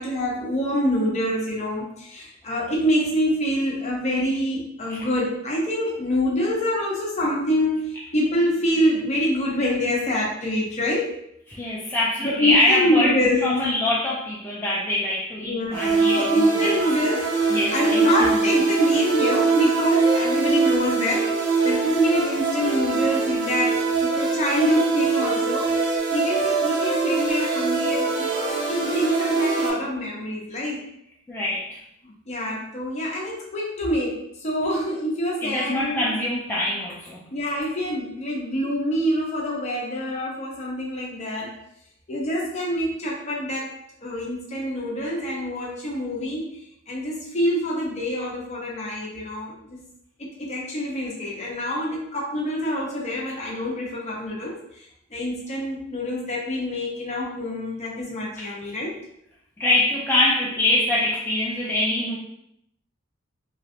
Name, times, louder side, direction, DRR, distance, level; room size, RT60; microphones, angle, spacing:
voice 1, 0.0-11.2 12.2-13.4 15.4-25.7 26.1-30.8 32.0-36.1 37.3-41.6 42.1-43.7 44.0-46.6 46.9-49.8 50.2-54.6 55.1-59.0, equal, 35° left, -3 dB, 0.8 m, -26 dB
voice 2, 11.5-16.8 17.5-18.6 31.3-31.8 35.4-37.3 59.6-62.2, left 1 dB, 10° left, -6 dB, 0.3 m, -24 dB
sound 1, 15.7-29.7, right 4 dB, 55° right, 0.7 m, -23 dB
3.1 x 2.5 x 2.6 m, 0.75 s
head